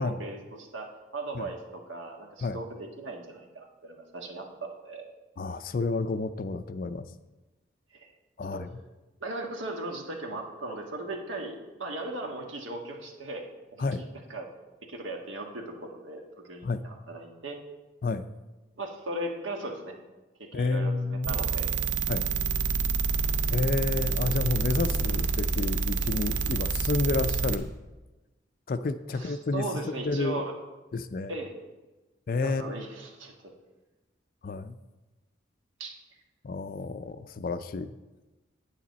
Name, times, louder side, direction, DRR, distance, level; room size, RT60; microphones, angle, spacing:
voice 1, 0.0-5.1 7.9-8.1 8.4-8.6 9.2-14.5 14.8-17.6 18.8-19.9 20.4-21.7 29.1-30.6 31.3-31.5 32.4-33.5 35.8-35.9, right 2 dB, 80° right, 1 dB, 1.5 m, -38 dB
voice 2, 5.4-7.1 8.4-8.7 13.8-14.0 16.6-16.8 18.0-18.3 20.5-21.4 22.1-22.2 23.5-27.7 28.7-29.7 30.0-30.4 30.9-31.3 32.3-32.9 34.4-34.8 36.4-37.9, left 3 dB, 45° left, 12 dB, 0.4 m, -30 dB
sound 1, 21.2-27.6, right 4 dB, 65° right, 0.6 m, -28 dB
9.1 x 8.7 x 4.1 m, 1.1 s
head